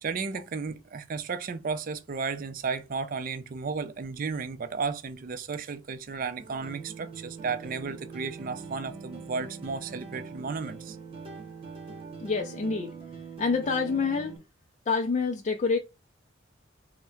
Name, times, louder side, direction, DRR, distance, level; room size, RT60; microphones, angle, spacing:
voice 1, 0.0-11.0, right 5 dB, 45° right, 0.4 m, -34 dB
sound 1, 6.4-14.4, right 5 dB, 30° right, 1.0 m, -43 dB
voice 2, 12.2-12.9 13.4-14.4 14.9-15.8, left 4 dB, 35° left, 0.4 m, -27 dB
3.5 x 2.1 x 4.3 m
head